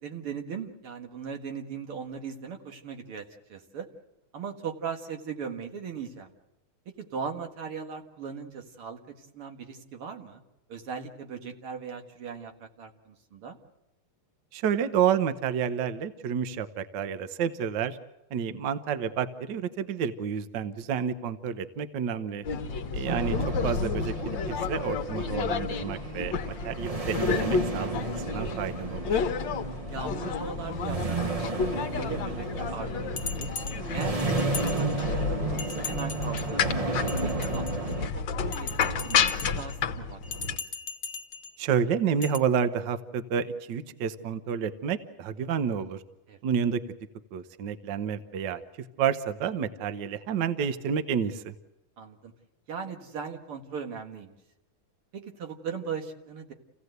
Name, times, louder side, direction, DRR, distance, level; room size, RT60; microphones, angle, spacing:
voice 1, 0.0-3.9 4.3-6.3 6.9-10.4 10.7-13.6 22.7-23.0 29.9-33.5 33.9-36.8 37.2-40.6 46.3-46.4 52.0-52.3 52.7-54.4 55.1-56.5, right 6 dB, 90° right, 4 dB, 2.7 m, -39 dB
voice 2, 14.5-18.0 18.3-22.4 22.9-23.4 23.6-27.9 28.3-29.1 41.6-46.0 46.4-46.8 47.3-48.6 49.0-51.5, right 7 dB, 60° right, 11 dB, 1.5 m, -29 dB
sound 1, 22.4-40.6, left 6 dB, 60° left, 1.6 m, -31 dB
sound 2, 23.1-38.1, right 3 dB, 45° right, 0.4 m, -33 dB
Bell, 33.2-35.2 35.6-36.6 37.0-38.0 38.5-39.8 40.2-41.6 42.2-42.4, left 4 dB, 45° left, 1.2 m, -39 dB
28.0 x 16.5 x 8.0 m, 0.94 s
omnidirectional pair, 2.4 m